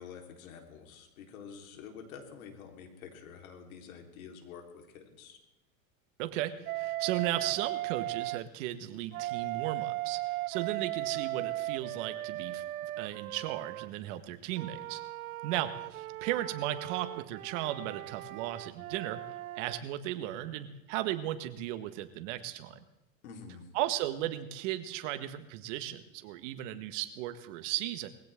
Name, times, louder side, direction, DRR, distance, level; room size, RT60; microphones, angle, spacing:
voice 1, 0.0-5.4 23.2-23.7, left 6 dB, 80° left, 3 dB, 4.1 m, -48 dB
voice 2, 6.2-12.6 13.0-15.0 15.4-19.2 19.5-22.8 23.7-28.1, right 13 dB, 60° right, 10 dB, 1.7 m, -36 dB
Wind instrument woodwind instrument, 6.7-8.4 9.1-13.9 14.6-19.8, right 17 dB, 90° right, 0.6 m, -37 dB
21.5 x 16.5 x 3.7 m, 1.0 s
supercardioid pair, 120°, 41 cm